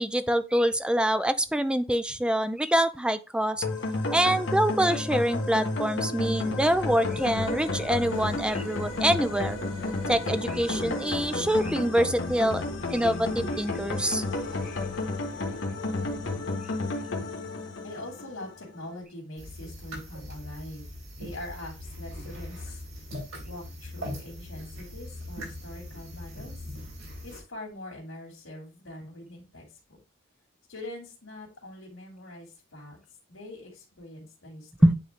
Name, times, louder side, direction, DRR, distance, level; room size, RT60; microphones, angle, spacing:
voice 1, 0.0-3.7 4.1-9.6 10.1-12.6 12.9-14.2 34.8-35.0, right 1 dB, 5° right, 0.4 m, -25 dB
sound 1, 3.6-18.7, left 2 dB, 65° left, 1.5 m, -32 dB
sound 2, 6.2-16.4, left 2 dB, 45° left, 1.3 m, -44 dB
voice 2, 17.8-20.9 21.2-22.8 23.4-26.5 27.2-30.0 30.7-33.0 33.3-34.9, left 1 dB, 90° left, 2.5 m, -43 dB
sound 3, 19.4-27.4, left 1 dB, 80° right, 4.2 m, -40 dB
9.1 x 3.8 x 3.5 m
head